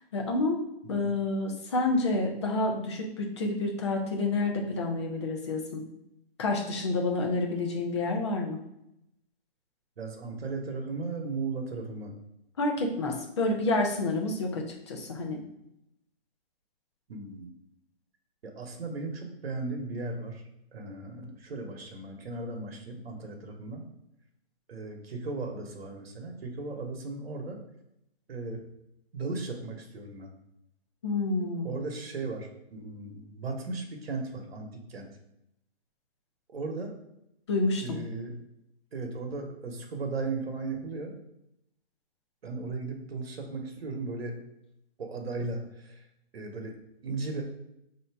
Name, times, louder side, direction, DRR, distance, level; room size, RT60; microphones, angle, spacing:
voice 1, 0.1-0.6 0.9-5.8 6.4-8.6 12.6-15.4 31.0-31.7 37.5-38.0, left 2 dB, 30° left, 1 dB, 0.6 m, -29 dB
voice 2, 10.0-12.1 17.1-17.5 18.4-20.4 20.7-23.8 24.7-27.6 28.3-28.6 29.1-30.3 31.6-35.1 36.5-36.9 37.8-38.4 38.9-41.1 42.4-44.4 45.0-46.0 46.3-46.7 47.0-47.4, right 3 dB, 80° right, 2 dB, 1.0 m, -36 dB
3.2 x 2.8 x 4.5 m, 0.82 s
hypercardioid pair, 165°, 30 cm